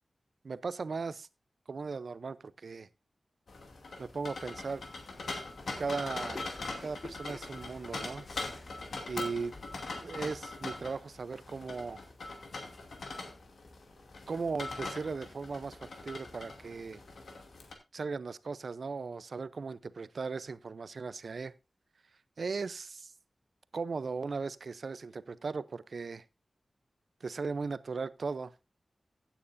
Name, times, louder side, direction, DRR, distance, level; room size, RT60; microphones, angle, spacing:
voice 1, 0.4-1.3 1.7-2.9 4.0-4.8 5.8-6.4 6.8-8.2 9.1-9.5 10.0-12.0 14.3-17.0 17.9-21.5 22.4-23.1 23.7-26.2 27.2-28.5, right 4 dB, 70° right, 0.6 m, -37 dB
sound 1, 3.5-17.7, left 3 dB, 90° left, 2.5 m, -42 dB
sound 2, 4.8-9.9, left 3 dB, 50° left, 1.0 m, -50 dB
15.5 x 9.1 x 2.6 m
wide cardioid pair, 90°, 0 cm